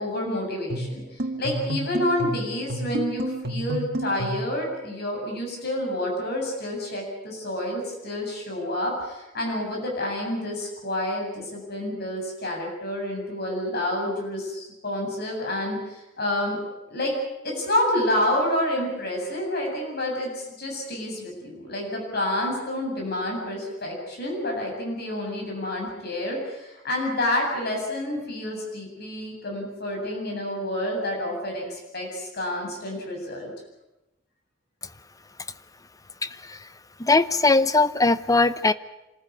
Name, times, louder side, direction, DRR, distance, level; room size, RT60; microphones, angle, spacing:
voice 1, 0.0-17.1 17.4-33.5, left 1 dB, 55° left, 0 dB, 8.0 m, -29 dB
sound 1, 0.7-4.5, right 1 dB, 55° right, 1.7 m, -30 dB
voice 2, 36.2-36.7 37.0-38.7, left 3 dB, 20° left, 14 dB, 0.7 m, -20 dB
26.0 x 14.5 x 9.6 m, 0.99 s
head